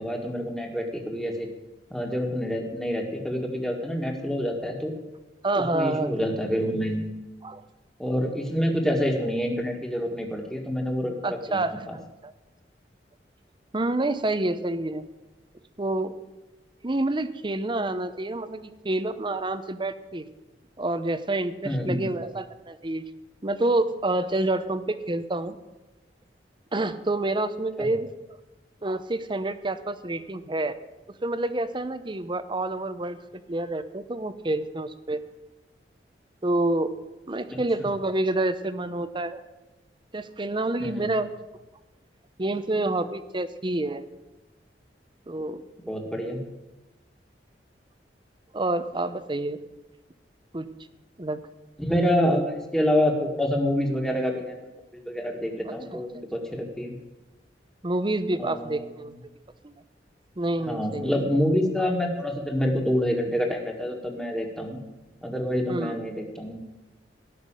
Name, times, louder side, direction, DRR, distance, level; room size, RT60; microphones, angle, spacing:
voice 1, 0.0-1.5 1.9-4.9 5.6-7.1 8.0-12.0 21.6-22.1 27.8-27.9 37.5-37.6 40.8-41.1 45.8-46.4 51.8-54.5 54.9-57.0 58.4-58.8 60.6-64.8 65.2-66.6, equal, 5° left, 2 dB, 1.9 m, -27 dB
voice 2, 5.4-6.1 7.4-7.6 11.2-12.3 13.7-15.0 15.8-16.1 16.8-20.3 20.8-23.0 23.4-25.6 26.7-28.1 28.8-30.8 31.2-33.2 33.5-35.2 36.4-36.9 37.3-39.4 40.1-41.3 42.4-44.1 45.3-45.6 48.5-49.6 50.5-50.7 51.2-51.4 55.6-56.0 57.8-59.1 59.6-59.7 60.4-61.1 61.8-61.9 65.7-66.0, right 2 dB, 25° right, 12 dB, 0.8 m, -28 dB
17.0 x 6.0 x 9.0 m, 1.1 s
head